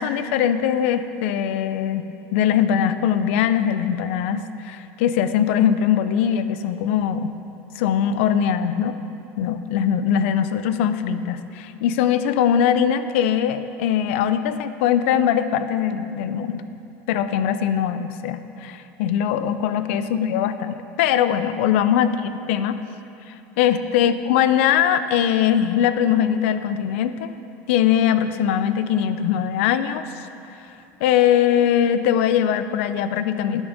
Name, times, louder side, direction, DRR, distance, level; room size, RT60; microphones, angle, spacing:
voice 1, 0.0-7.3 7.7-8.9 9.4-16.7 17.1-22.8 23.3-27.3 27.7-30.3 31.0-33.6, left 9 dB, 85° left, 11 dB, 0.5 m, -21 dB
10.0 x 6.1 x 6.5 m, 2.7 s
cardioid pair, 170°, 7 cm